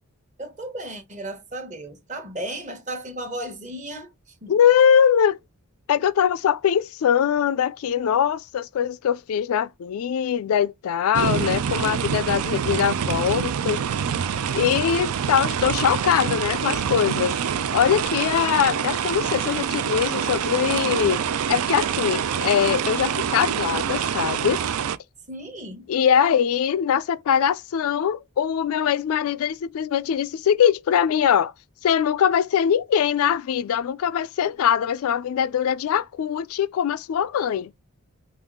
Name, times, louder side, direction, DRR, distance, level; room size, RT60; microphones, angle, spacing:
voice 1, 0.4-4.1 4.4-4.5 25.3-25.9, right 1 dB, 35° right, 1.1 m, -34 dB
voice 2, 4.5-5.4 5.9-13.8 14.5-17.4 17.7-21.2 21.5-24.6 25.9-31.5 31.8-37.7, left 8 dB, 75° left, 0.3 m, -22 dB
sound 1, 11.1-25.0, right 8 dB, 75° right, 0.4 m, -26 dB
5.3 x 2.4 x 3.5 m
head